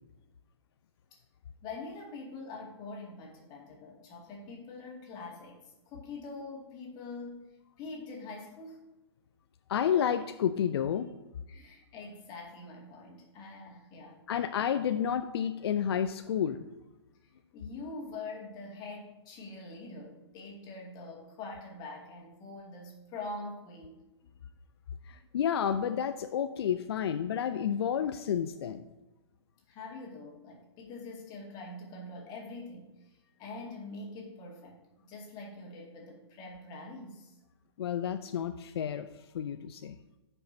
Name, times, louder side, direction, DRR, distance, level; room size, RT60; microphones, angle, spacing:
voice 1, 1.6-7.4 7.8-8.8 11.5-14.2 17.5-24.0 29.7-32.9 33.4-37.4, left 3 dB, 30° left, -1 dB, 2.2 m, -44 dB
voice 2, 9.7-11.1 14.3-16.7 25.0-28.8 37.8-39.1 39.3-40.0, left 8 dB, 65° left, 8 dB, 0.5 m, -30 dB
16.0 x 5.4 x 2.8 m, 1.0 s
hypercardioid pair, 125°, 14 cm